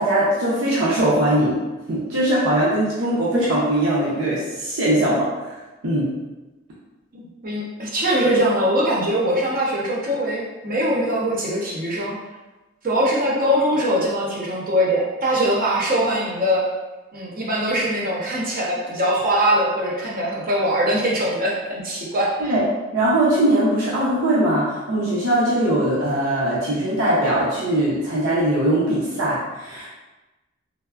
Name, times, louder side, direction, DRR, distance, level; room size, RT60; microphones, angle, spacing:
voice 1, 0.0-1.6 1.9-5.3 5.8-6.1 22.4-22.6 22.9-29.9, right 1 dB, 85° right, -8 dB, 0.6 m, -20 dB
voice 2, 7.1-12.2 12.8-16.7 17.1-22.6, equal, 45° right, -4 dB, 0.6 m, -22 dB
3.3 x 2.0 x 2.3 m, 1.1 s
head